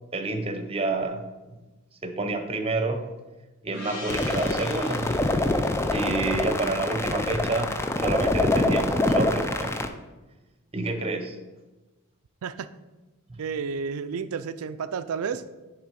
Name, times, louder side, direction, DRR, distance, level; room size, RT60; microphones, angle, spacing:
voice 1, 0.1-1.2 2.0-3.1 3.6-5.1 5.9-9.8 10.7-11.4 13.3-13.4, right 2 dB, 25° right, 6 dB, 0.7 m, -29 dB
Gong, 3.7-8.5, left 2 dB, 60° left, 1.2 m, -44 dB
sound 1, 4.1-9.9, left 2 dB, 10° left, 0.4 m, -25 dB
voice 2, 13.4-15.5, right 6 dB, 80° right, 13 dB, 0.4 m, -31 dB
9.6 x 3.5 x 5.2 m, 1.1 s
head